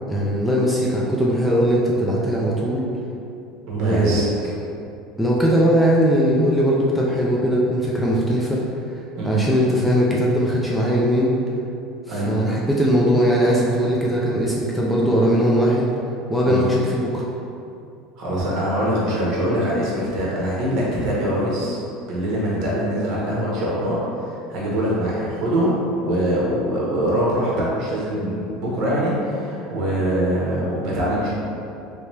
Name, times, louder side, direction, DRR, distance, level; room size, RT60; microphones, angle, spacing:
voice 1, 0.1-2.9 3.8-4.2 5.2-8.6 9.2-11.3 12.1-15.9 16.3-17.2, equal, 5° left, -5 dB, 0.4 m, -19 dB
voice 2, 3.7-4.2 9.2-9.4 12.1-12.4 16.4-16.7 18.2-21.8 22.1-31.3, equal, 55° right, -5 dB, 1.0 m, -23 dB
3.2 x 2.9 x 3.2 m, 2.7 s
cardioid pair, 150°, 0 cm